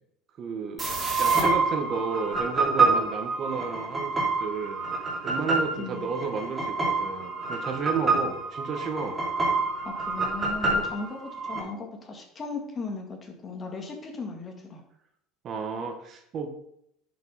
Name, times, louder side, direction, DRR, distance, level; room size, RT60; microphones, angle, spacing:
voice 1, 0.4-0.9 1.2-4.8 5.2-9.2 10.7-10.9 15.4-16.5, right 5 dB, 45° right, 6 dB, 1.2 m, -32 dB
sound 1, 0.8-11.6, right 3 dB, 15° right, 3.3 m, -27 dB
voice 2, 9.8-11.2 11.4-14.8, left 3 dB, 30° left, 2 dB, 1.9 m, -37 dB
10.5 x 5.3 x 4.1 m, 0.75 s
supercardioid pair, 110°, 0 cm